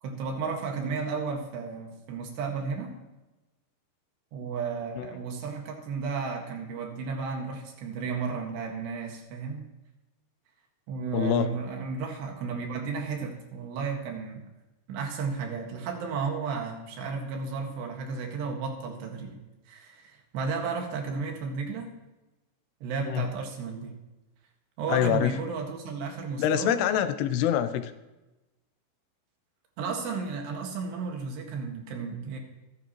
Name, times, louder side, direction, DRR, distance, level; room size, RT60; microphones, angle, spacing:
voice 1, 0.0-3.0 4.3-9.6 10.9-14.4 14.9-21.9 22.8-24.0 24.8-26.8 29.8-32.4, right 5 dB, 90° right, 1 dB, 4.0 m, -33 dB
voice 2, 11.1-11.5 23.1-23.3 24.9-25.3 26.4-27.9, left 10 dB, 80° left, 10 dB, 2.8 m, -25 dB
27.0 x 9.7 x 3.1 m, 1.0 s
omnidirectional pair, 4.7 m